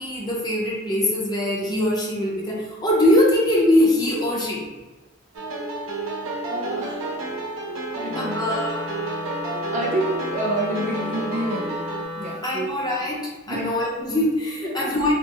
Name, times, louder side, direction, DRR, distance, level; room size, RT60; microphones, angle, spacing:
voice 1, 0.0-4.7 8.1-8.7 12.4-15.1, left 1 dB, 20° left, -4 dB, 0.6 m, -22 dB
sound 1, 5.3-12.0, right 2 dB, 85° right, 0.6 m, -31 dB
voice 2, 6.5-7.2 8.0-8.5 9.4-11.8 12.2-13.1 13.5-13.9 14.6-14.9, right 1 dB, 40° right, -2 dB, 0.5 m, -29 dB
Wind instrument woodwind instrument, 8.1-12.4, left 3 dB, 75° left, 1.3 m, -34 dB
3.6 x 2.1 x 2.7 m, 1.2 s
head